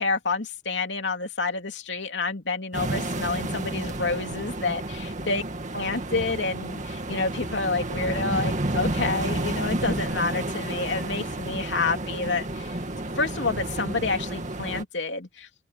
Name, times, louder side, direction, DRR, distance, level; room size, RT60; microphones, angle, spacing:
voice 1, 0.0-5.4 5.7-12.8 13.2-15.5, left 3 dB, 75° left, 3.1 m, -28 dB
sound 1, 2.7-14.8, right 1 dB, 45° right, 2.2 m, -31 dB
open air
head